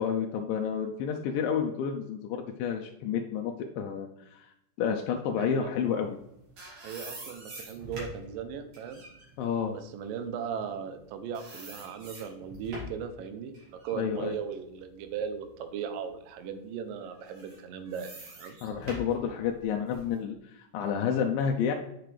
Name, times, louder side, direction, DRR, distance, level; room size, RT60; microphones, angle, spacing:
voice 1, 0.0-4.5 4.8-6.2 9.4-9.7 13.9-14.4 18.6-21.7, left 7 dB, 90° left, 2 dB, 2.3 m, -30 dB
voice 2, 5.4-5.7 6.8-9.0 9.7-18.6, right 7 dB, 80° right, 8 dB, 2.4 m, -38 dB
sound 1, 6.1-11.0 11.3-13.1 13.5-15.5 16.0-16.1 17.1-20.1, right 1 dB, 45° right, 2.8 m, -45 dB
7.4 x 6.1 x 3.3 m, 0.81 s
omnidirectional pair, 4.0 m